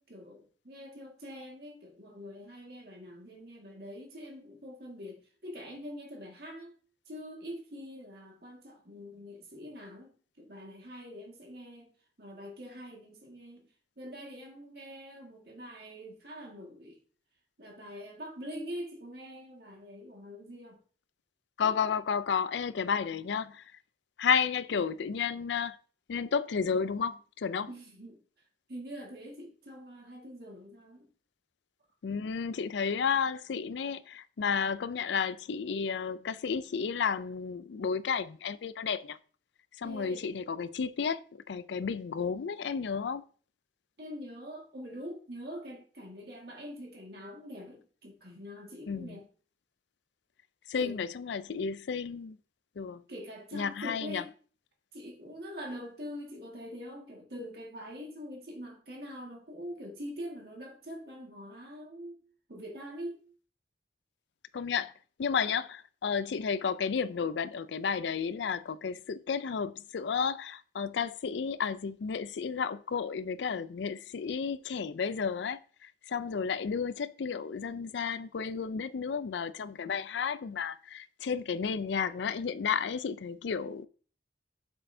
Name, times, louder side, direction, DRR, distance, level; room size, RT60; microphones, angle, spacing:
voice 1, 0.0-6.7 7.1-11.9 12.2-13.6 14.0-17.0 17.6-20.8 27.7-28.2 28.7-31.1 39.8-40.3 44.0-49.2 50.8-51.0 53.1-54.3 54.9-62.2 62.5-63.2, equal, 55° right, 1.8 m, -44 dB
voice 2, 21.6-23.6 24.2-25.8 26.1-27.7 32.0-39.2 39.8-43.2 48.9-49.2 50.7-52.4 52.8-53.0 53.5-54.2 64.5-64.9 65.2-83.9, left 6 dB, 75° left, 0.4 m, -32 dB
7.6 x 6.2 x 2.7 m
head